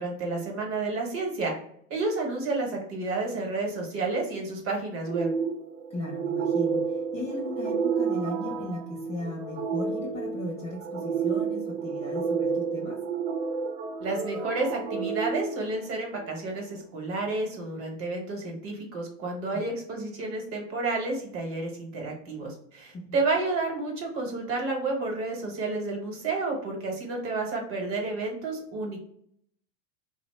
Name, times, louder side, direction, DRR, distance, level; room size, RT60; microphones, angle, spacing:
voice 1, 0.0-1.5 1.9-5.3 14.0-29.0, right 3 dB, 35° right, 1 dB, 1.0 m, -30 dB
sound 1, 5.0-16.4, right 6 dB, 75° right, 0.7 m, -30 dB
voice 2, 5.9-13.0 19.5-19.6 22.9-23.1, left 2 dB, 20° left, -3 dB, 0.4 m, -37 dB
2.8 x 2.0 x 3.0 m, 0.68 s
supercardioid pair, 130°, 38 cm